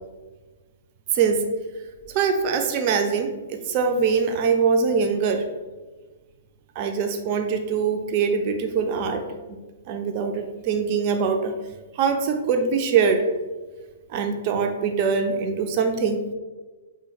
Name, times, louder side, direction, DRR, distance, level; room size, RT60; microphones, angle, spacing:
voice 1, 1.1-1.4 2.1-5.4 6.8-9.2 9.5-9.6 9.9-11.6 11.9-13.3 14.1-16.2, right 5 dB, 40° right, 6 dB, 0.4 m, -23 dB
3.7 x 2.0 x 4.0 m, 1.3 s
figure-of-eight pair, 110°, 0 cm